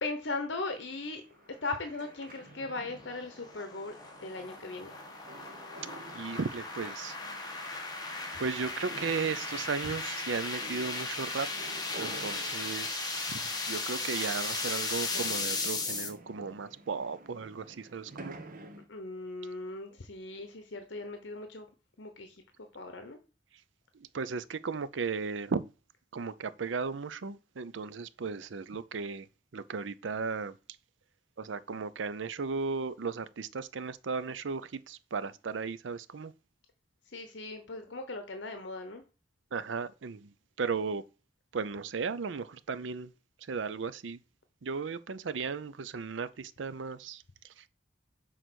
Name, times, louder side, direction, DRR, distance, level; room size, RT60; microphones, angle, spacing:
voice 1, 0.0-1.2 1.5-3.9 4.2-4.9 18.9-21.7 22.0-22.4 22.7-23.2 37.1-39.0, left 3 dB, 70° left, 0.9 m, -38 dB
sound 1, 0.7-18.9, right 2 dB, 45° right, 0.9 m, -51 dB
sound 2, 2.1-16.1, left 3 dB, 20° left, 1.4 m, -36 dB
voice 2, 6.1-7.2 8.4-11.5 12.0-18.4 23.9-25.6 26.1-29.3 29.5-30.6 31.4-36.3 39.5-41.0 41.5-43.1 43.5-44.2 44.6-47.2 47.6-47.7, right 5 dB, 85° right, 0.5 m, -35 dB
6.3 x 4.0 x 6.1 m
head